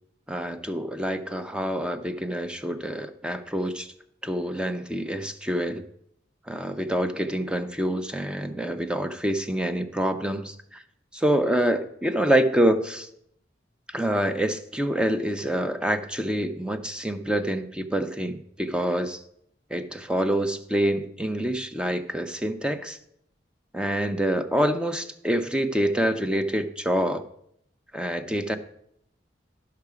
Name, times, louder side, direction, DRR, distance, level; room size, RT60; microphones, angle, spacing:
voice 1, 0.3-3.9 4.2-5.8 6.5-10.8 11.1-13.1 13.9-19.2 19.7-23.0 23.7-27.2 27.9-28.6, right 1 dB, 5° right, 9 dB, 0.5 m, -26 dB
12.0 x 5.8 x 4.9 m, 0.72 s
head